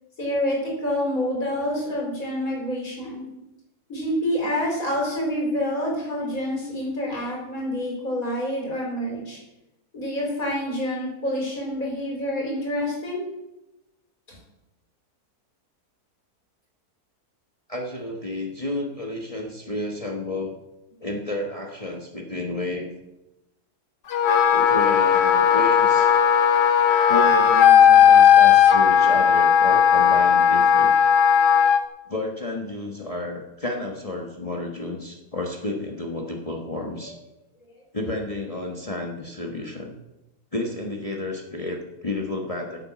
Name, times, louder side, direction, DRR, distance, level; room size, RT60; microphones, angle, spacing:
voice 1, 0.2-3.2 3.9-9.4 9.9-13.2 37.0-37.1, left 1 dB, 60° left, -2 dB, 4.8 m, -27 dB
voice 2, 17.7-20.5 21.0-22.9 24.5-26.2 27.1-30.9 32.1-37.2 37.9-39.9 40.5-42.8, left 2 dB, 25° left, 0 dB, 1.3 m, -31 dB
Wind instrument woodwind instrument, 24.1-31.8, left 8 dB, 90° left, 1.5 m, -16 dB
11.0 x 8.2 x 7.5 m, 0.96 s
omnidirectional pair, 1.7 m